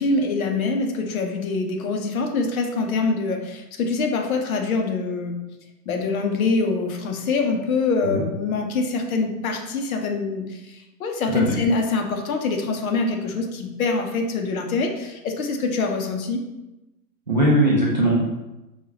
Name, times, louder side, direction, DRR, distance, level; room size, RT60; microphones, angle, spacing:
voice 1, 0.0-5.4 5.9-16.4, left 3 dB, 60° left, 3 dB, 0.8 m, -24 dB
voice 2, 17.3-18.2, right 1 dB, 30° right, -6 dB, 0.4 m, -19 dB
5.4 x 2.4 x 3.2 m, 1.0 s
hypercardioid pair, 160°, 50 cm